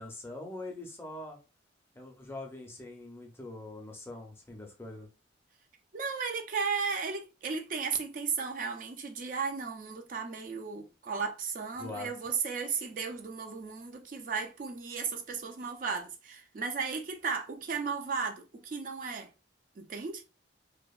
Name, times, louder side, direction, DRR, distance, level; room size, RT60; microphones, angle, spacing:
voice 1, 0.0-1.4 1.9-5.1 11.8-12.1, left 2 dB, 15° left, 0.5 m, -43 dB
voice 2, 5.9-19.3 19.8-20.2, right 5 dB, 45° right, 0.3 m, -35 dB
2.7 x 2.1 x 2.3 m
head